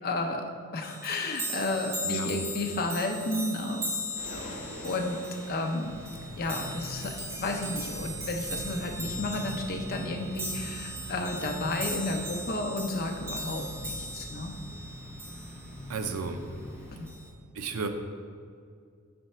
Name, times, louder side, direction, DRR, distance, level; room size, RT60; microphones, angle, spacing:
voice 1, 0.0-3.9 4.2-4.5 4.8-5.2 5.5-6.0 6.4-14.5 17.0-17.1, left 2 dB, 45° left, 3 dB, 0.5 m, -32 dB
sound 1, 0.8-15.8 17.1-17.3, equal, 10° right, 0.7 m, -38 dB
voice 2, 2.0-2.3 15.9-16.4 17.5-17.9, right 4 dB, 85° right, 7 dB, 0.5 m, -33 dB
sound 2, 4.2-12.6, right 1 dB, 70° right, 0.9 m, -48 dB
sound 3, 5.8-17.0, left 1 dB, 35° right, 1.4 m, -43 dB
4.3 x 4.0 x 5.5 m, 2.2 s
head